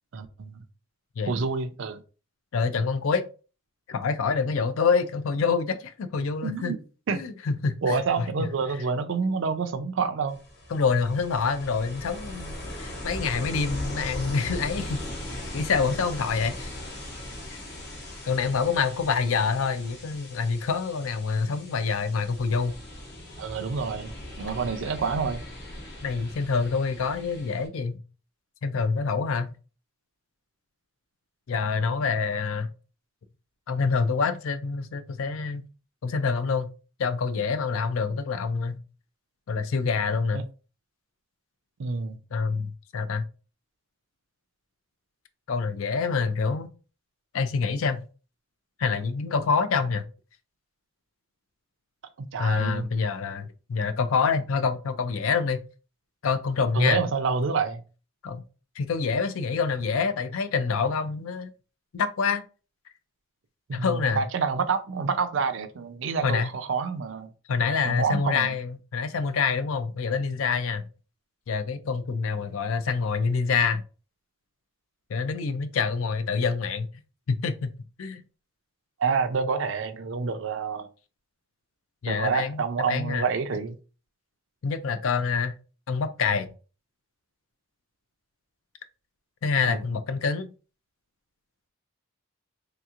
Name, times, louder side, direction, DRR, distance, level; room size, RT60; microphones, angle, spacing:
voice 1, 0.1-0.6 1.3-2.0 6.4-6.8 7.1-7.2 7.8-10.4 23.4-25.5 40.3-40.4 41.8-42.2 52.2-52.9 56.7-57.8 63.7-67.3 67.8-68.5 79.0-80.9 82.1-83.8 89.6-89.8, right 5 dB, 60° right, 0.4 m, -28 dB
voice 2, 2.5-3.3 3.9-6.7 7.1-8.3 10.7-15.0 15.3-16.7 18.3-22.8 26.0-28.0 28.6-29.5 31.5-32.7 33.7-35.6 36.0-36.7 37.0-38.8 39.5-40.4 42.3-43.3 45.5-46.7 47.3-48.0 48.8-50.0 52.4-55.7 56.2-57.0 58.2-58.4 58.8-61.5 61.9-62.4 63.7-64.2 66.2-66.5 67.5-70.8 71.5-73.8 75.1-76.9 77.3-77.7 78.0-78.2 82.0-83.2 84.6-85.5 85.9-86.5 89.4-90.5, left 5 dB, 70° left, 0.4 m, -26 dB
Ocean, 10.3-27.7, left 1 dB, 50° left, 1.1 m, -39 dB
3.3 x 2.9 x 2.4 m
head